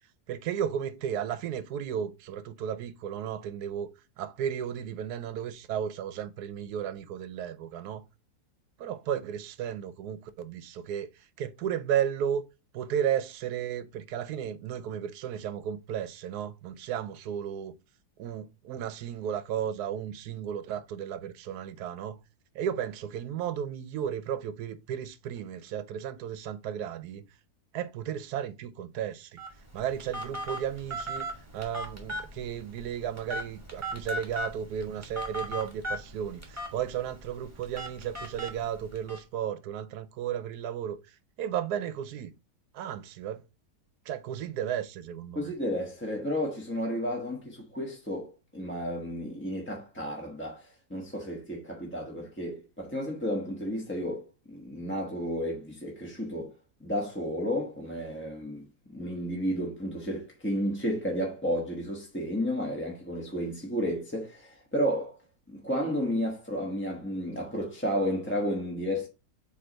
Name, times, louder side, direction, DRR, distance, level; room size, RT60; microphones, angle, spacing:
voice 1, 0.3-3.9 4.2-8.0 8.8-11.1 11.4-12.4 12.7-17.8 18.2-22.2 22.5-27.2 27.7-29.4 29.7-31.3 31.5-41.0 41.4-42.3 42.7-43.4 44.1-45.6, right 9 dB, 80° right, 1.2 m, -34 dB
Telephone, 29.4-39.2, equal, 10° right, 1.4 m, -38 dB
voice 2, 45.3-56.5 56.8-65.2 65.5-69.1, equal, 10° left, 0.9 m, -32 dB
7.8 x 3.2 x 3.9 m
omnidirectional pair, 1.7 m